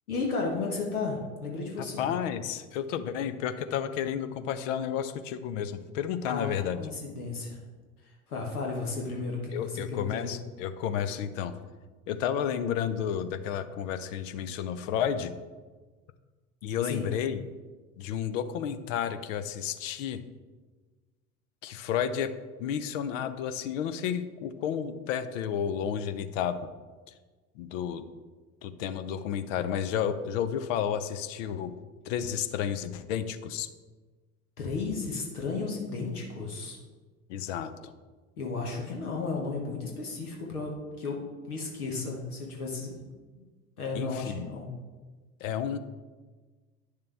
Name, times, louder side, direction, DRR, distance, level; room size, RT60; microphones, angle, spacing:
voice 1, 0.1-2.2 6.2-6.5 6.8-7.6 8.0-10.3 16.8-17.1 34.6-36.8 38.4-43.0 43.8-44.7, left 3 dB, 80° left, -1 dB, 1.5 m, -34 dB
voice 2, 1.8-6.8 9.5-11.5 12.1-15.3 16.6-17.4 18.0-20.2 21.6-22.3 22.6-26.6 27.1-27.2 27.5-28.0 28.6-31.7 32.0-33.7 37.3-37.9 43.9-44.5 45.4-45.8, left 9 dB, 60° left, 11 dB, 0.8 m, -31 dB
9.4 x 6.7 x 3.4 m, 1.3 s
figure-of-eight pair, 70°, 44 cm